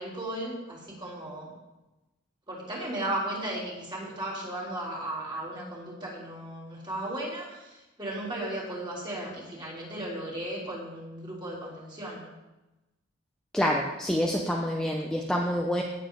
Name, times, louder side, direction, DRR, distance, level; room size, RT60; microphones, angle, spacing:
voice 1, 0.0-1.5 2.5-12.3, right 1 dB, 25° right, -5 dB, 3.6 m, -35 dB
voice 2, 13.5-15.8, equal, 5° left, -1 dB, 0.8 m, -27 dB
18.0 x 7.3 x 3.9 m, 1.0 s
head